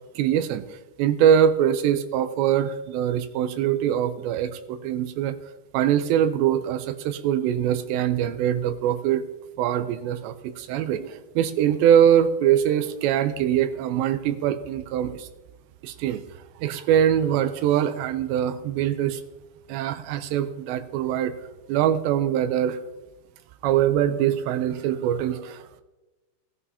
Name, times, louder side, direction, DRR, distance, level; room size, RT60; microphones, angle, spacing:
voice 1, 0.2-5.4 5.7-9.2 9.6-15.3 15.8-16.2 16.6-19.2 19.7-21.3 21.7-22.8 23.6-25.6, right 10 dB, 80° right, 11 dB, 2.7 m, -23 dB
19.0 x 11.0 x 2.8 m, 1.1 s
omnidirectional pair, 5.2 m